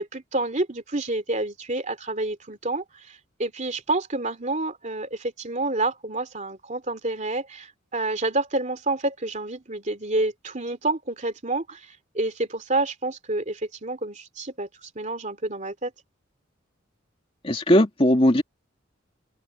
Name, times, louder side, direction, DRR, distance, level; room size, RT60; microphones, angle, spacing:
voice 1, 0.0-15.9, right 2 dB, 35° right, 2.8 m, -29 dB
voice 2, 17.4-18.4, equal, 30° left, 2.3 m, -18 dB
open air
head